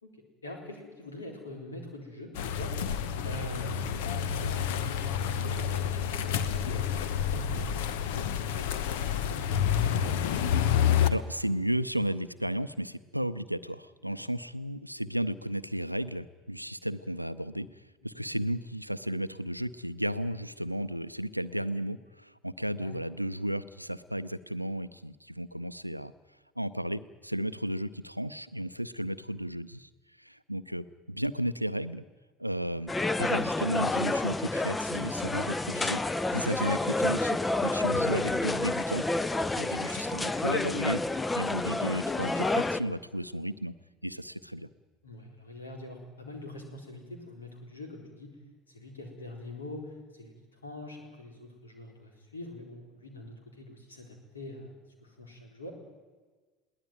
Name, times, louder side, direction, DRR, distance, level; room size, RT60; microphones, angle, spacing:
voice 1, 0.0-9.8 14.0-14.2 18.0-18.3 22.7-22.9 45.0-48.3 48.7-54.7 55.0-55.7, left 1 dB, 80° left, 3 dB, 4.0 m, -45 dB
sound 1, 2.4-11.1, left 9 dB, 60° left, 1.1 m, -29 dB
voice 2, 11.1-26.1 26.6-29.9 30.2-32.0 32.4-32.9 33.2-36.0 36.3-39.1 39.6-43.7 44.0-44.7, equal, 90° right, 14 dB, 0.6 m, -34 dB
sound 2, 32.9-42.8, left 2 dB, 15° left, 0.8 m, -29 dB
21.5 x 17.5 x 9.3 m, 1.3 s
figure-of-eight pair, 65°, 0 cm